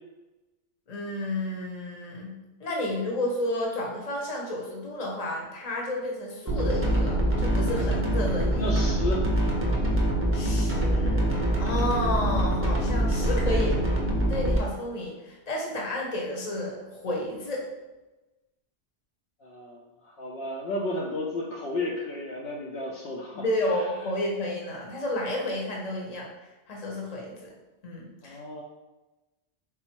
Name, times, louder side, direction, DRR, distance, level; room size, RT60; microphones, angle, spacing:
voice 1, 0.9-8.7 10.3-11.3 11.6-13.8 14.3-17.7 23.3-26.3 26.7-27.5 27.8-28.4, left 1 dB, 40° left, -2 dB, 0.8 m, -31 dB
sound 1, 6.5-14.6, right 1 dB, 20° right, 0.4 m, -24 dB
voice 2, 8.6-9.5 19.4-23.4 28.2-28.6, left 1 dB, 70° left, -2 dB, 0.8 m, -33 dB
3.7 x 2.0 x 4.3 m, 1.1 s
omnidirectional pair, 1.1 m